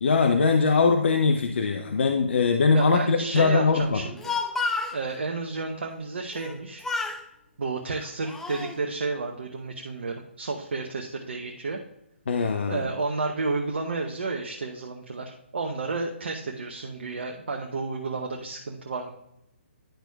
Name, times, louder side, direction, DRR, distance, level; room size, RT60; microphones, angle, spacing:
voice 1, 0.0-4.0 12.3-12.8, left 4 dB, 60° left, 5 dB, 0.6 m, -21 dB
voice 2, 2.7-4.3 4.9-6.8 7.6-11.8 12.7-19.1, right 3 dB, 60° right, 2 dB, 0.8 m, -31 dB
Speech, 4.0-5.0 6.3-6.6 6.8-7.2 7.9-8.8, left 4 dB, 5° left, 0.4 m, -30 dB
10.0 x 6.0 x 2.3 m, 0.82 s
figure-of-eight pair, 135°, 7 cm